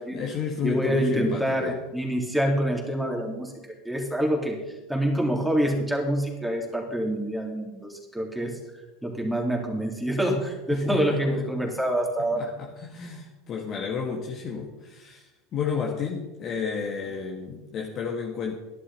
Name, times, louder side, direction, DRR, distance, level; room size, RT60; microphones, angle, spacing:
voice 1, 0.0-1.8 10.7-11.8 12.2-18.5, left 6 dB, 40° left, 1 dB, 1.6 m, -32 dB
voice 2, 0.6-3.5 3.8-4.6 4.9-8.6 9.0-12.4, right 1 dB, ahead, 0 dB, 3.2 m, -26 dB
13.0 x 11.0 x 4.2 m, 1.1 s
hypercardioid pair, 75°, 0 cm